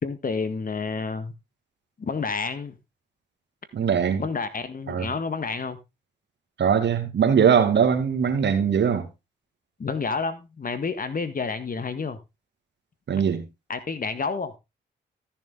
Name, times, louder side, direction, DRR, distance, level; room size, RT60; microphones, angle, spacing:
voice 1, 0.0-1.3 2.0-2.8 4.2-5.8 9.8-12.2 13.7-14.6, left 4 dB, 50° left, 1.7 m, -29 dB
voice 2, 3.7-4.2 4.9-5.1 6.6-9.1 13.1-13.4, right 7 dB, 65° right, 2.2 m, -21 dB
13.5 x 7.2 x 3.7 m
supercardioid pair, 50°, 19 cm